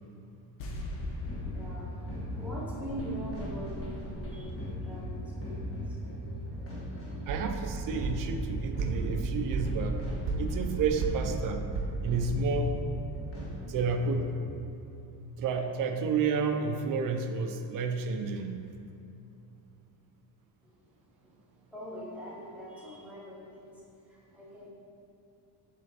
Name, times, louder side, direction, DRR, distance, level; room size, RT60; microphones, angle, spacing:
sound 1, 0.6-3.8 4.1-4.2, left 1 dB, 85° left, 1.0 m, -41 dB
voice 1, 0.9-6.3 7.0-7.3 20.6-24.7, equal, 5° right, -6 dB, 1.1 m, -44 dB
sound 2, 1.3-14.6, equal, 30° left, 1.3 m, -38 dB
voice 2, 7.3-10.0 10.4-11.6 12.0-12.8 13.7-14.3 15.4-18.6, right 4 dB, 50° right, 6 dB, 0.5 m, -30 dB
sound 3, 7.3-13.1, right 3 dB, 85° right, 1.0 m, -34 dB
6.4 x 3.9 x 4.2 m, 2.7 s
cardioid pair, 170°, 42 cm